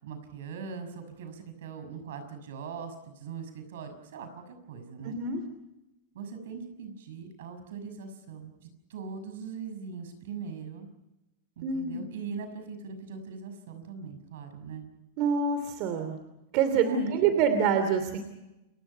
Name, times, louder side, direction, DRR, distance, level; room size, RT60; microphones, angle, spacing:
voice 1, 0.0-5.2 6.1-10.9 11.6-14.8 16.7-17.3, right 6 dB, 75° right, 9 dB, 6.3 m, -41 dB
voice 2, 5.0-5.4 11.6-12.1 15.2-16.2 16.5-18.2, right 6 dB, 45° right, 8 dB, 2.9 m, -26 dB
30.0 x 21.5 x 5.7 m, 0.96 s
supercardioid pair, 140°, 0 cm